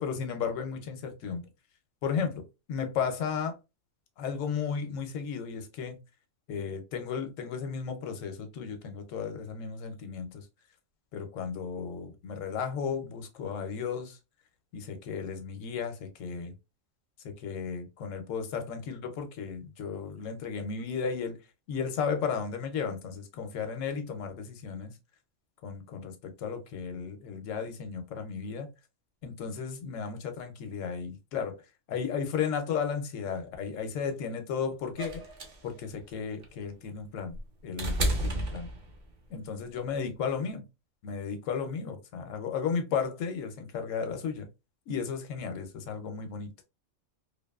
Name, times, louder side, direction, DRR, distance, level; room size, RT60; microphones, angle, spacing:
voice 1, 0.0-1.5 2.0-2.4 2.7-3.6 4.2-6.0 6.5-10.5 11.1-14.2 14.7-16.5 17.2-21.4 21.7-24.9 25.6-28.7 29.2-31.6 31.9-35.2 35.6-37.4 37.6-38.7 39.3-40.6 41.0-44.5 44.9-46.5, left 6 dB, 75° left, 0.9 m, -34 dB
sound 1, 35.0-39.3 40.5-40.6, right 1 dB, 50° right, 0.6 m, -32 dB
2.5 x 2.4 x 2.3 m
omnidirectional pair, 1.3 m